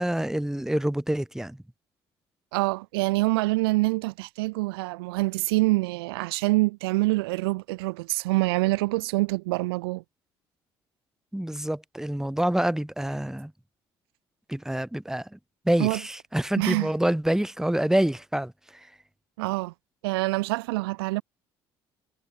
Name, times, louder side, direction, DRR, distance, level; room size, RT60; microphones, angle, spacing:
voice 1, 0.0-1.6 11.3-13.5 14.5-15.4 15.6-18.5, right 1 dB, 5° right, 1.1 m, -26 dB
voice 2, 2.5-10.0 15.8-16.0 16.6-16.9 19.4-19.7 20.0-21.2, right 22 dB, 85° right, 0.7 m, -25 dB
hypercardioid pair, 60°, 12 cm